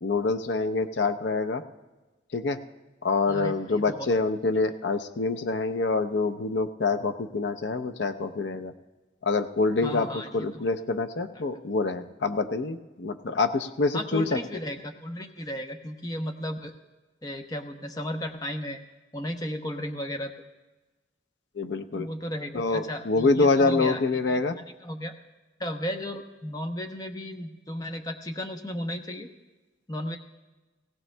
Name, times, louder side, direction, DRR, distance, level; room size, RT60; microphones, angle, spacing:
voice 1, 0.0-1.6 2.3-2.6 3.0-8.7 9.2-10.1 10.3-14.4 21.6-22.1 22.5-24.5, left 3 dB, 65° left, 7 dB, 0.6 m, -26 dB
voice 2, 3.3-4.1 9.8-10.7 11.3-11.4 13.9-16.7 17.2-18.8 19.1-20.3 21.9-24.4 24.8-25.1 25.6-29.3 29.9-30.2, left 1 dB, 20° left, 5 dB, 0.7 m, -34 dB
18.5 x 17.5 x 2.2 m, 1.2 s
head